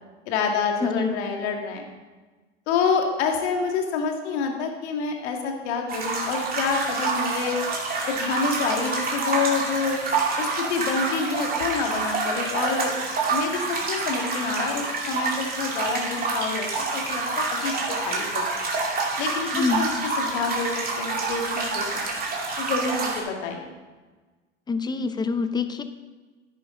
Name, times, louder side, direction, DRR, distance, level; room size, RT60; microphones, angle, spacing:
voice 1, 0.3-1.8 2.7-7.6 8.2-10.0 10.4-12.9 13.3-17.7 18.0-18.5 19.2-19.9 20.2-21.9 22.6-23.7, left 5 dB, 65° left, 2 dB, 2.0 m, -27 dB
voice 2, 0.8-1.1 19.5-19.9 24.7-25.8, left 4 dB, 10° left, 10 dB, 0.6 m, -25 dB
sound 1, 5.9-23.2, right 3 dB, 25° right, 2.5 m, -27 dB
10.5 x 10.0 x 3.8 m, 1.3 s
hypercardioid pair, 100°, 36 cm